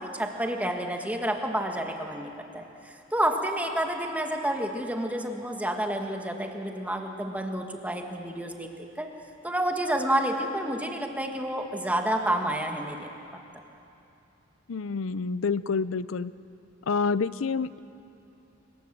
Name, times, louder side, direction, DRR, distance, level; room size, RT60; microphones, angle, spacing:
voice 1, 0.0-9.1 9.4-13.1, right 1 dB, 10° right, 3 dB, 1.7 m, -29 dB
voice 2, 14.7-16.3 16.9-17.8, left 5 dB, 80° left, 16 dB, 0.6 m, -28 dB
24.5 x 21.0 x 7.6 m, 2.8 s
head